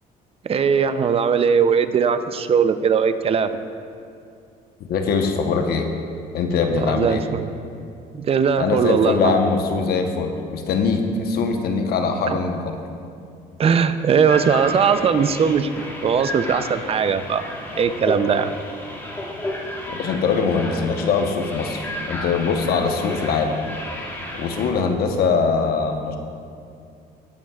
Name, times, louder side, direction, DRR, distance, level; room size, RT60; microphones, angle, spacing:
voice 1, 0.4-3.6 6.8-7.5 8.1-9.3 12.3-12.4 13.6-15.7 16.0-17.4 17.8-18.5, right 6 dB, 35° right, 11 dB, 0.5 m, -19 dB
voice 2, 4.9-5.9 6.3-7.2 8.6-12.8 19.9-23.6 24.3-26.2, left 5 dB, 65° left, 4 dB, 1.0 m, -22 dB
sound 1, 14.3-24.7, left 1 dB, 15° left, 2.1 m, -32 dB
16.0 x 8.8 x 2.4 m, 2.4 s
cardioid pair, 110°, 17 cm